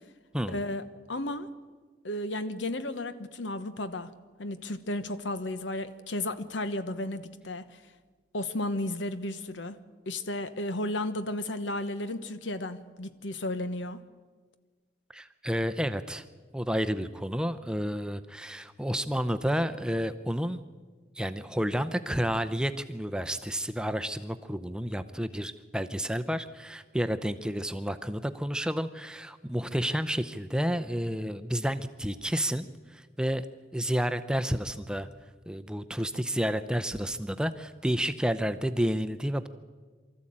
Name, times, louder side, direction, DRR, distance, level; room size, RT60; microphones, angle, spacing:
voice 1, 0.5-0.8 1.1-1.5 2.0-4.1 4.4-7.8 8.3-9.8 10.1-14.0, left 1 dB, 80° left, 12 dB, 1.1 m, -33 dB
voice 2, 15.1-16.2 16.5-20.6 21.2-33.4 33.7-35.1 35.5-39.5, equal, 5° right, 10 dB, 0.6 m, -30 dB
24.0 x 13.5 x 8.7 m, 1.5 s
head